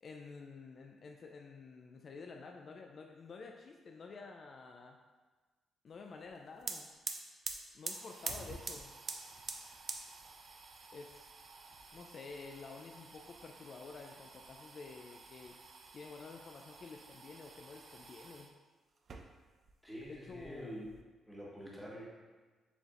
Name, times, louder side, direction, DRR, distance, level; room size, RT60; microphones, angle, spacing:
voice 1, 0.0-5.0 5.8-6.9 7.7-8.9 10.9-11.3 11.9-15.6 15.9-18.5 20.1-20.8, left 4 dB, 55° left, 2 dB, 0.3 m, -50 dB
sound 1, 6.3-6.4 6.6-18.5 19.0-19.7 20.0-21.0, right 4 dB, 55° right, 0.4 m, -47 dB
voice 2, 19.8-21.0 21.3-22.0, equal, ahead, -4 dB, 1.3 m, -46 dB
6.8 x 2.5 x 2.4 m, 1.4 s
supercardioid pair, 65°, 0 cm